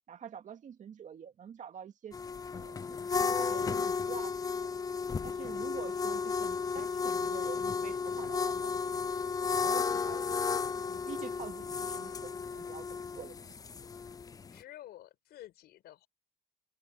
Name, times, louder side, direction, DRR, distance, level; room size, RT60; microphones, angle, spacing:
voice 1, 0.1-2.2 2.5-4.3 4.6-4.7 5.2-8.9 9.5-10.3 10.8-13.6, right 8 dB, 45° right, 2.2 m, -47 dB
sound 1, 2.1-14.6, left 5 dB, 20° left, 0.4 m, -33 dB
voice 2, 14.5-16.1, left 13 dB, 70° left, 6.0 m, -51 dB
cardioid pair, 110°, 17 cm